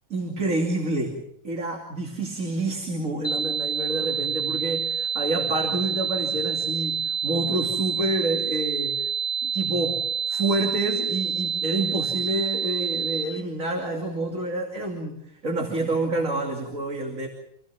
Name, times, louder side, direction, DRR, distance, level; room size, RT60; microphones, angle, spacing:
voice 1, 0.1-9.1 9.4-17.3, right 2 dB, 75° right, 2 dB, 3.2 m, -28 dB
sound 1, 3.2-13.2, right 6 dB, 25° left, 1.2 m, -27 dB
27.5 x 17.0 x 7.4 m, 0.76 s
omnidirectional pair, 1.4 m